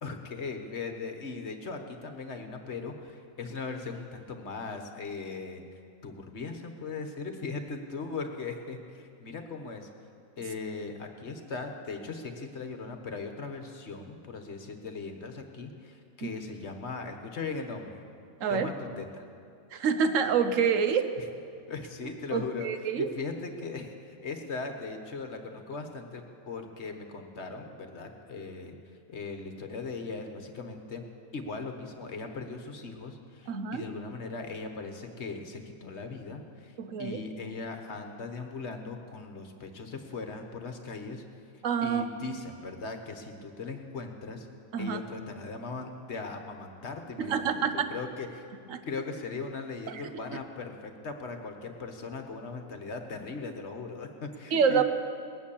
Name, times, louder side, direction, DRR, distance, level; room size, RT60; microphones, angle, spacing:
voice 1, 0.0-9.9 10.4-18.0 18.5-19.2 21.2-21.3 21.7-28.8 29.1-31.0 31.3-41.2 41.8-44.5 44.8-48.5 48.8-54.8, left 4 dB, 50° left, 5 dB, 1.5 m, -39 dB
voice 2, 18.4-18.7 19.7-21.1 22.3-23.1 33.5-33.8 36.8-37.2 41.6-42.1 44.7-45.0 47.2-47.9 48.7-48.8 49.9-50.0 54.5-54.8, right 6 dB, 65° right, 9 dB, 1.3 m, -27 dB
19.5 x 9.5 x 7.2 m, 2.4 s
omnidirectional pair, 1.5 m